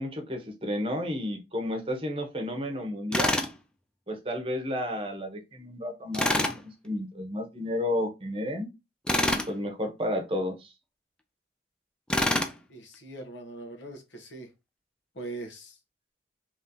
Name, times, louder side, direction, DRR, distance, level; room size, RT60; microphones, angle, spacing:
voice 1, 0.0-3.4 4.1-8.7 9.5-10.7, left 1 dB, 30° right, 0.8 m, -32 dB
Tools, 3.1-3.5 6.1-6.6 9.1-9.5 12.1-12.5, left 1 dB, 5° left, 0.3 m, -25 dB
voice 2, 12.7-14.5 15.1-15.8, right 2 dB, 85° left, 1.1 m, -41 dB
3.1 x 2.8 x 3.7 m
head